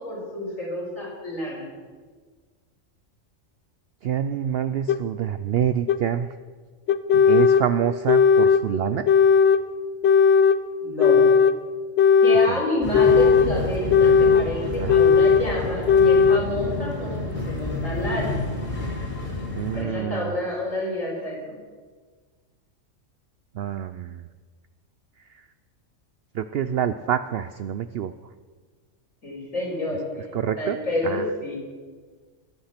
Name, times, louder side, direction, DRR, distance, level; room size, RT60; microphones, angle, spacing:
voice 1, 0.0-1.7 10.8-11.2 12.2-18.4 19.7-21.6 29.2-30.0 30.6-31.6, left 1 dB, 80° left, -3 dB, 5.0 m, -29 dB
voice 2, 4.0-6.3 7.1-9.1 12.5-12.6 14.8-14.9 19.5-20.3 23.5-24.3 25.3-25.4 26.3-28.1 30.3-30.8 31.0-31.2, right 9 dB, 60° right, 11 dB, 0.7 m, -26 dB
sound 1, 4.9-5.0 5.9-6.0 6.9-7.7 8.1-8.6 9.1-9.6 10.0-10.6 11.0-11.6 12.0-12.5 12.9-13.5 13.9-14.5 14.9-15.5 15.9-16.4, left 6 dB, 60° left, 0.8 m, -16 dB
sound 2, 12.8-19.8, left 2 dB, 35° left, 2.8 m, -30 dB
21.5 x 8.7 x 5.9 m, 1.5 s
omnidirectional pair, 1.3 m